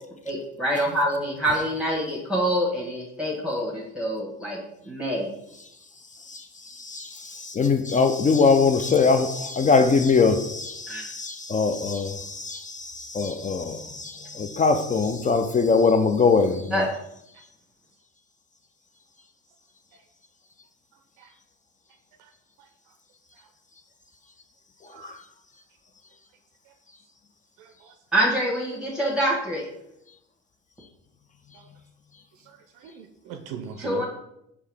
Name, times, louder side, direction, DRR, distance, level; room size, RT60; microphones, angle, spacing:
voice 1, 0.2-4.6 4.9-5.3 10.9-11.0 16.7-16.8 28.1-29.6 33.8-34.0, right 1 dB, ahead, -5 dB, 1.1 m, -25 dB
voice 2, 6.3-16.8 25.0-25.1, left 4 dB, 25° left, 8 dB, 0.3 m, -22 dB
voice 3, 27.6-27.9 31.5-31.6 32.5-34.0, right 7 dB, 80° right, 6 dB, 0.5 m, -40 dB
4.6 x 2.8 x 3.4 m, 0.81 s
supercardioid pair, 70°, 32 cm